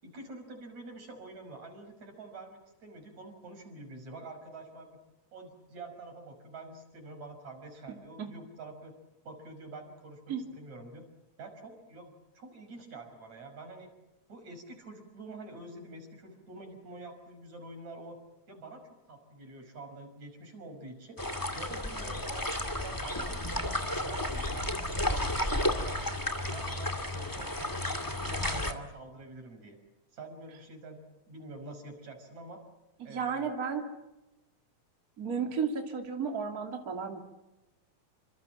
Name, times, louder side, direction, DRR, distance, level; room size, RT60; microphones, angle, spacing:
voice 1, 0.0-5.0 5.3-8.9 9.2-11.0 11.4-13.9 14.3-18.2 18.5-21.2 21.6-23.3 23.6-26.1 26.5-29.8 30.1-32.6 33.0-33.5, right 2 dB, 70° right, 5 dB, 7.1 m, -47 dB
sound 1, 21.2-28.7, left 1 dB, 10° left, 1.9 m, -32 dB
voice 2, 33.0-33.9 35.2-37.2, right 6 dB, 30° right, 3 dB, 3.1 m, -33 dB
29.5 x 26.5 x 7.5 m, 0.96 s
omnidirectional pair, 3.3 m